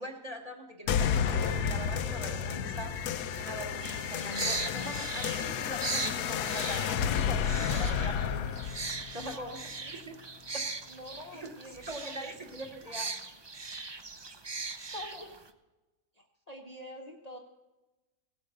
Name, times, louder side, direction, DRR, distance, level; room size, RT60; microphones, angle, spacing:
voice 1, 0.0-9.6 10.1-10.2 11.3-13.1 14.9-15.3, equal, 25° right, 2 dB, 2.1 m, -42 dB
sound 1, 0.9-9.9, left 8 dB, 85° left, 1.3 m, -31 dB
sound 2, 3.8-15.5, right 4 dB, 40° right, 0.3 m, -39 dB
voice 2, 9.2-9.9 10.9-12.5 12.9-13.0 15.2-15.3 16.1-17.4, equal, 30° left, 1 dB, 1.0 m, -47 dB
17.0 x 8.6 x 6.6 m, 1.1 s
omnidirectional pair, 1.6 m